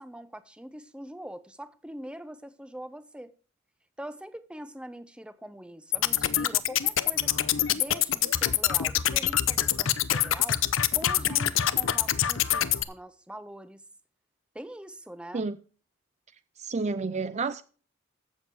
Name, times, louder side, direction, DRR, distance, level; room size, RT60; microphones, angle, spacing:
voice 1, 0.0-3.3 4.0-7.4 7.7-10.6 10.9-13.8 14.5-15.4, right 1 dB, 5° right, 0.8 m, -43 dB
sound 1, 5.9-12.8, left 11 dB, 80° left, 0.7 m, -25 dB
voice 2, 16.6-17.6, right 4 dB, 35° right, 0.5 m, -30 dB
14.5 x 7.2 x 4.7 m
head